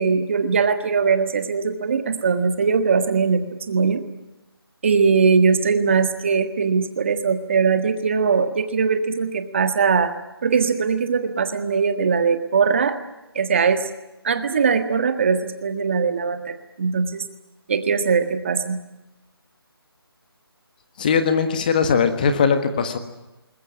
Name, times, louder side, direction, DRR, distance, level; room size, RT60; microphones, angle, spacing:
voice 1, 0.0-4.0 4.8-10.1 10.4-13.0 13.3-13.9 14.2-17.2 17.7-18.8, right 5 dB, 30° right, 9 dB, 1.6 m, -20 dB
voice 2, 21.0-23.0, left 6 dB, 20° left, 8 dB, 1.5 m, -20 dB
21.0 x 21.0 x 9.7 m, 0.98 s
figure-of-eight pair, 170°, 13 cm